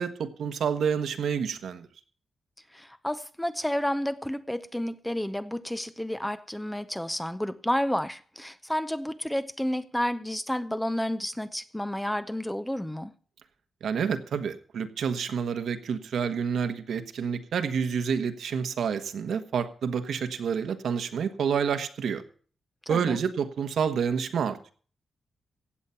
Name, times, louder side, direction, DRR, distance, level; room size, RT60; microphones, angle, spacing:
voice 1, 0.0-1.9 13.8-22.2 22.9-24.7, right 7 dB, 75° right, 1.3 m, -28 dB
voice 2, 2.7-13.1 22.9-23.2, left 1 dB, 5° left, 0.7 m, -31 dB
16.0 x 8.4 x 5.7 m
wide cardioid pair, 155°, 0 cm